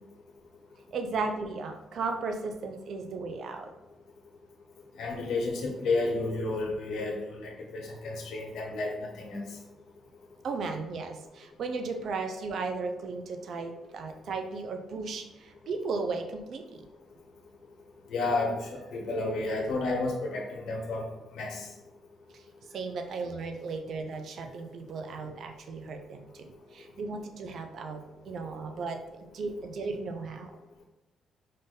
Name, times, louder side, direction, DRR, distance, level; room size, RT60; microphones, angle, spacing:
voice 1, 0.9-3.7 10.4-16.8 22.3-22.4 22.7-30.5, right 4 dB, 65° right, 5 dB, 0.5 m, -35 dB
voice 2, 5.0-9.5 18.1-21.1 21.3-21.7, left 2 dB, 75° left, -1 dB, 1.1 m, -31 dB
5.5 x 2.6 x 3.8 m, 1.0 s
cardioid pair, 90°, 0 cm